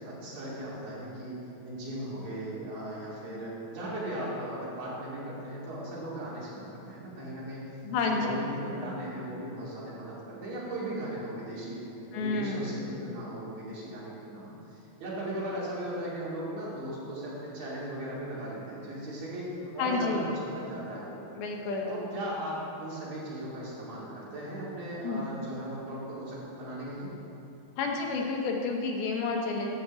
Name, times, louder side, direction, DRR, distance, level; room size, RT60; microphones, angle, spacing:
voice 1, 0.0-1.4 1.6-7.6 8.0-11.8 12.1-21.5 21.9-27.1, right 1 dB, 70° right, -7 dB, 4.4 m, -37 dB
voice 2, 7.8-8.9 12.1-12.7 19.8-20.4 21.4-22.1 25.0-25.2 27.8-29.8, left 3 dB, 90° left, 1 dB, 3.1 m, -30 dB
13.0 x 4.6 x 8.2 m, 2.8 s
omnidirectional pair, 4.2 m